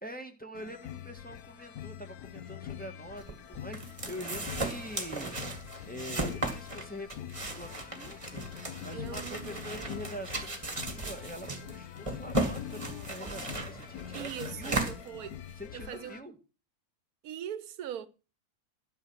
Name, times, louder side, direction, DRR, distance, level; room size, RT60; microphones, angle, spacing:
voice 1, 0.0-5.5 5.8-14.8 15.6-16.3, equal, 5° left, 1.6 m, -45 dB
sound 1, 0.5-16.2, left 10 dB, 85° left, 1.3 m, -44 dB
sound 2, 3.2-15.7, right 2 dB, 20° right, 1.8 m, -36 dB
voice 2, 8.9-10.2 14.1-16.3 17.2-18.1, right 10 dB, 80° right, 1.2 m, -42 dB
12.0 x 5.9 x 7.5 m
omnidirectional pair, 1.5 m